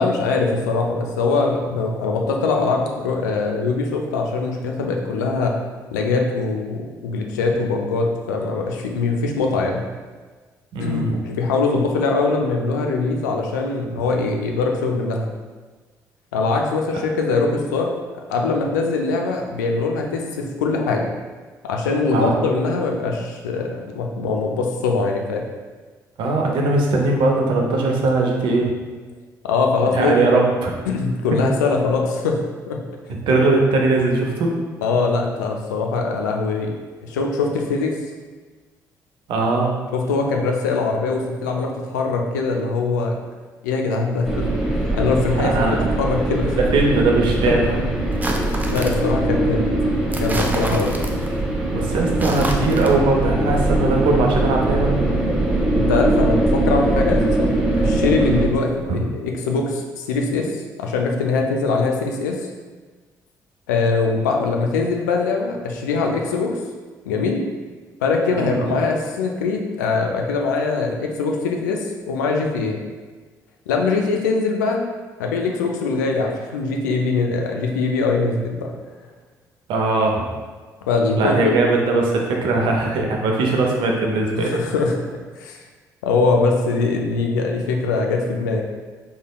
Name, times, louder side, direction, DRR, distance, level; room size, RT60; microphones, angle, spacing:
voice 1, 0.0-5.5 5.9-9.8 10.8-15.3 16.3-17.9 18.3-21.1 21.6-25.4 29.4-30.2 30.9-32.4 32.7-32.8 33.1-33.2 34.8-36.7 37.0-37.9 39.9-43.1 43.6-44.5 44.7-45.5 46.0-46.6 47.5-47.6 48.7-49.7 50.2-50.9 55.7-62.4 63.7-66.5 67.1-67.4 68.0-72.8 73.7-74.8 75.2-78.7 80.9-81.6 84.3-85.0 85.4-85.6 86.0-88.6, left 3 dB, 80° left, 2 dB, 0.4 m, -22 dB
voice 2, 10.7-11.2 22.1-22.4 26.2-28.7 29.9-30.7 33.3-34.6 39.3-39.8 45.4-45.8 46.7-47.8 51.7-54.9 58.9-59.0 68.4-68.7 79.7-80.2 81.2-84.5, right 2 dB, 60° right, 0 dB, 0.6 m, -20 dB
sound 1, 44.2-58.5, right 2 dB, ahead, 1.0 m, -21 dB
sound 2, 48.1-49.1 50.1-51.4 52.1-53.0, right 1 dB, 20° right, 0.5 m, -28 dB
3.6 x 3.3 x 2.3 m, 1.4 s
figure-of-eight pair, 45°, 9 cm